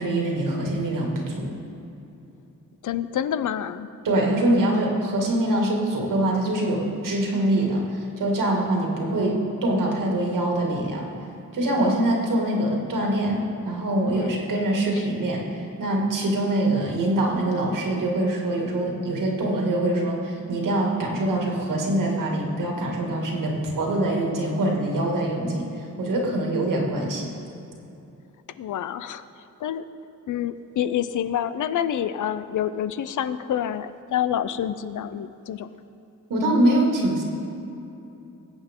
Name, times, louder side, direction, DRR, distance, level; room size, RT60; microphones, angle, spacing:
voice 1, 0.0-1.5 4.0-11.1 11.5-15.4 15.8-25.7 26.0-27.2 36.3-37.2, right 1 dB, 80° right, -1 dB, 2.2 m, -24 dB
voice 2, 2.8-3.9 14.1-14.4 15.0-15.1 28.6-29.2 29.6-29.9 30.3-35.7, left 10 dB, 65° left, 13 dB, 0.5 m, -27 dB
20.0 x 8.1 x 3.7 m, 2.8 s
wide cardioid pair, 130°, 32 cm